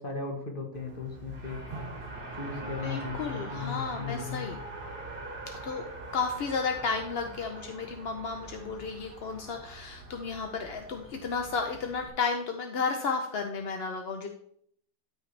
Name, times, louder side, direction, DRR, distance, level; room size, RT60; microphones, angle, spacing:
voice 1, 0.0-1.6 2.3-4.5, left 5 dB, 35° left, 2 dB, 1.4 m, -37 dB
Race car auto racing, 0.7-12.1, right 2 dB, 35° right, 1.6 m, -43 dB
voice 2, 2.6-4.6 5.6-5.8 6.1-14.3, left 5 dB, 55° left, 4 dB, 0.7 m, -33 dB
12.5 x 5.4 x 3.3 m, 0.67 s
omnidirectional pair, 1.8 m